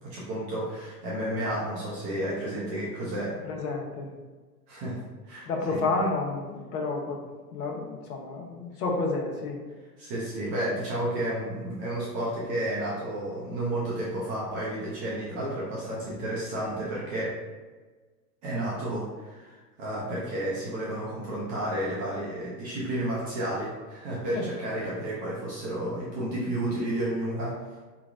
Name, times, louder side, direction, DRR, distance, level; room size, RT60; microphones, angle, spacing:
voice 1, 0.0-3.4 4.7-5.8 10.0-17.4 18.4-27.6, right 1 dB, 20° right, -6 dB, 0.4 m, -31 dB
voice 2, 3.4-4.1 5.5-7.2 7.5-9.6 24.3-24.4, left 3 dB, 65° left, 0 dB, 1.1 m, -30 dB
4.4 x 3.0 x 2.5 m, 1.3 s
hypercardioid pair, 115°, 49 cm